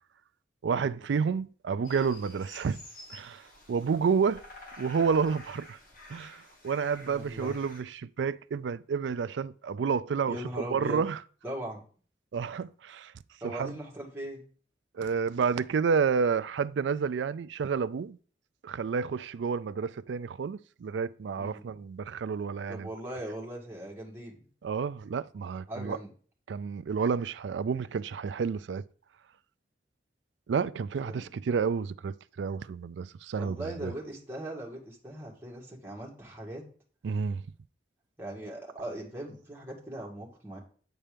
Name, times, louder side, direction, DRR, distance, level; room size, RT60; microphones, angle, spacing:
voice 1, 0.6-2.8 3.1-4.4 4.8-5.8 6.1-11.2 12.3-13.1 13.4-13.7 14.9-18.2 18.6-22.9 24.6-26.0 26.5-28.8 30.5-33.9 37.0-37.4, right 6 dB, 80° right, 0.4 m, -30 dB
sound 1, 1.8-7.8, left 2 dB, 50° left, 1.9 m, -50 dB
voice 2, 7.0-7.6 10.3-11.0 11.4-11.8 13.4-14.4 21.4-21.7 22.7-24.5 25.7-26.1 30.9-31.3 33.4-36.6 38.2-40.6, right 1 dB, 10° right, 2.0 m, -40 dB
8.9 x 4.4 x 5.1 m
head